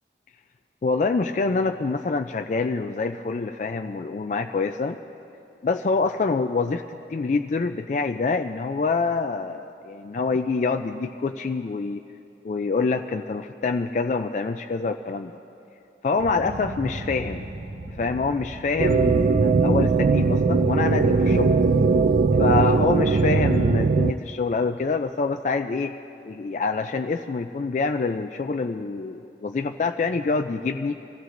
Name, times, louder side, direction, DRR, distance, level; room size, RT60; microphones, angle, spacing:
voice 1, 0.8-5.0 5.6-12.0 12.4-15.3 16.0-17.5 17.9-21.6 22.4-25.9 26.2-31.0, left 4 dB, 40° left, 5 dB, 0.3 m, -26 dB
sound 1, 16.2-21.9, right 1 dB, 80° right, 0.9 m, -39 dB
sound 2, 18.8-24.1, right 4 dB, 50° right, 0.3 m, -19 dB
26.0 x 15.5 x 2.6 m, 2.8 s
head